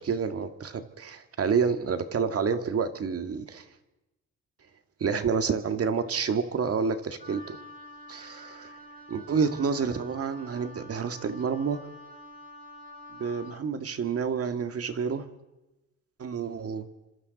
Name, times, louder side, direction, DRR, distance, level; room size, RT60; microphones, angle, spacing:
voice 1, 0.0-3.7 5.0-7.6 8.1-8.7 9.1-11.8 13.2-15.3 16.2-16.9, right 6 dB, 50° right, 8 dB, 1.9 m, -29 dB
Wind instrument woodwind instrument, 7.2-13.6, equal, 30° right, 3.4 m, -47 dB
30.0 x 25.5 x 4.1 m, 1.0 s
cardioid pair, 90°, 30 cm